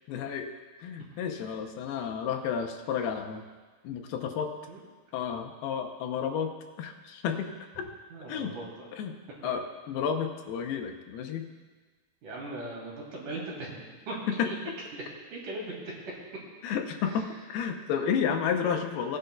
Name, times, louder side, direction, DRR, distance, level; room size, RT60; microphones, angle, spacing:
voice 1, 0.1-0.5 0.8-3.4 3.8-4.5 5.1-6.5 6.8-7.5 7.8-7.9 8.3-8.5 9.0-9.1 9.4-11.5 14.3-14.8 16.6-19.2, left 7 dB, 80° left, 4 dB, 2.7 m, -31 dB
voice 2, 8.1-8.9 12.2-14.3 14.9-15.0 15.3-15.7, right 2 dB, 55° right, -4 dB, 3.5 m, -39 dB
18.0 x 10.0 x 2.3 m, 1.4 s
omnidirectional pair, 4.5 m